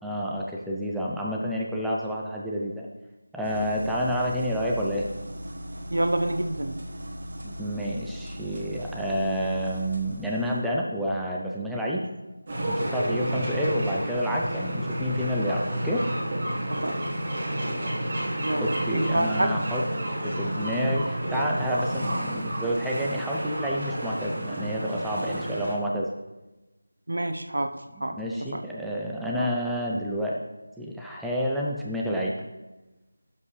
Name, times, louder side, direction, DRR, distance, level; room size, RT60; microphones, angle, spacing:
voice 1, 0.0-2.9 3.3-5.1 7.4-12.0 12.7-16.1 18.6-19.8 20.2-26.1 28.0-30.4 30.8-32.3, equal, ahead, -4 dB, 0.4 m, -29 dB
sound 1, 3.4-10.6, equal, 45° right, 1.2 m, -38 dB
voice 2, 5.9-6.8 11.9-12.0 16.7-17.0 18.4-18.7 18.9-19.5 27.1-28.2 28.5-28.6 29.4-29.5, right 1 dB, 65° right, 7 dB, 0.9 m, -27 dB
sound 2, 12.5-25.7, right 1 dB, 20° right, 1.5 m, -30 dB
11.0 x 7.2 x 3.2 m, 1.1 s
figure-of-eight pair, 180°, 0 cm